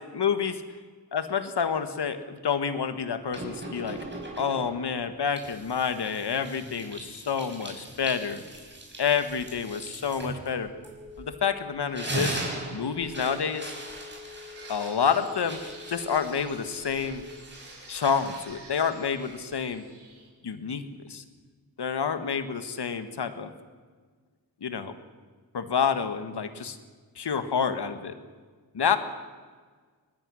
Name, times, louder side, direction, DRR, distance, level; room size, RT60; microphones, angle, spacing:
voice 1, 0.1-0.5 1.1-4.0 4.4-8.4 9.0-10.7 11.2-12.4 12.7-13.7 14.7-17.2 17.9-19.8 20.4-21.2 21.8-23.5 24.6-24.9 25.5-26.8 27.2-28.1 28.7-29.0, left 6 dB, 80° left, 10 dB, 1.6 m, -28 dB
sound 1, 3.3-4.9 5.4-11.4 11.7-19.6, right 2 dB, 25° right, 6.0 m, -39 dB
Telephone, 10.8-17.6, left 6 dB, ahead, 4.8 m, -47 dB
sound 2, 14.5-20.3, right 4 dB, 85° right, 4.4 m, -51 dB
23.5 x 19.5 x 6.3 m, 1.5 s
wide cardioid pair, 90°, 40 cm